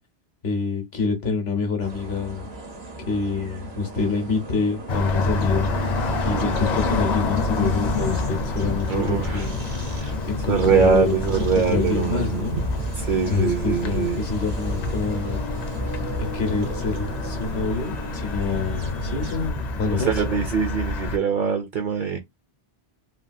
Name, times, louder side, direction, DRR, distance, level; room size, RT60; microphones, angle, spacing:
voice 1, 0.4-2.5 3.0-5.7 6.2-9.7 10.3-12.6 13.3-15.4 16.2-20.2, left 4 dB, 80° left, 1.2 m, -27 dB
sound 1, 1.8-19.5, right 1 dB, 75° right, 1.2 m, -38 dB
sound 2, 4.9-21.2, left 2 dB, 50° left, 0.6 m, -27 dB
voice 2, 8.9-9.5 10.0-10.1 10.5-12.6 12.9-14.2 20.1-22.2, right 6 dB, 60° right, 0.7 m, -23 dB
3.3 x 2.3 x 2.5 m
omnidirectional pair, 1.1 m